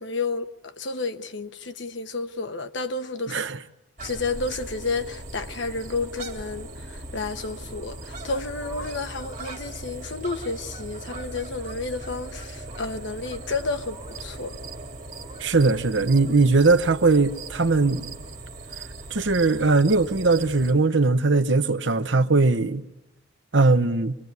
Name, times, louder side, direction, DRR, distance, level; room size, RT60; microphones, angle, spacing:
voice 1, 0.0-3.5 4.0-14.6, left 3 dB, 70° left, 1.1 m, -31 dB
sound 1, 4.0-20.7, right 2 dB, 40° right, 2.9 m, -39 dB
voice 2, 15.4-18.1 19.1-22.8 23.5-24.2, right 3 dB, 70° right, 0.9 m, -20 dB
25.0 x 21.0 x 9.6 m
head